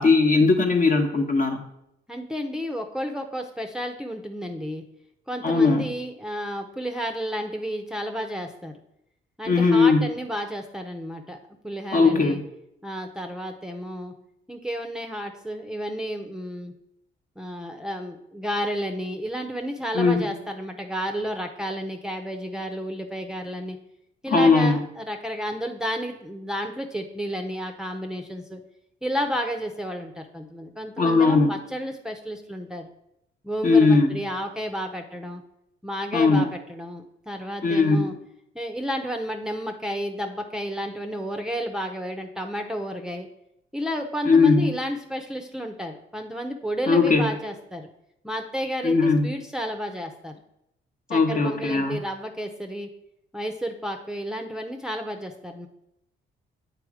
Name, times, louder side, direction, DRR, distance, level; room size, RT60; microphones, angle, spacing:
voice 1, 0.0-1.6 5.4-5.9 9.5-10.0 11.9-12.4 19.9-20.3 24.3-24.8 31.0-31.5 33.6-34.2 36.1-36.5 37.6-38.1 44.3-44.7 46.9-47.3 48.8-49.3 51.1-52.0, left 4 dB, 40° left, 4 dB, 1.2 m, -19 dB
voice 2, 2.1-4.8 5.3-8.7 9.4-11.4 11.6-12.4 12.8-14.1 14.5-16.7 17.4-23.8 24.2-28.6 29.0-32.9 33.4-35.4 35.8-38.1 38.5-43.3 43.7-47.9 48.2-50.4 51.1-52.9 53.3-55.7, equal, 5° right, 4 dB, 0.8 m, -31 dB
7.8 x 4.2 x 4.9 m, 0.80 s
cardioid pair, 90°, 20 cm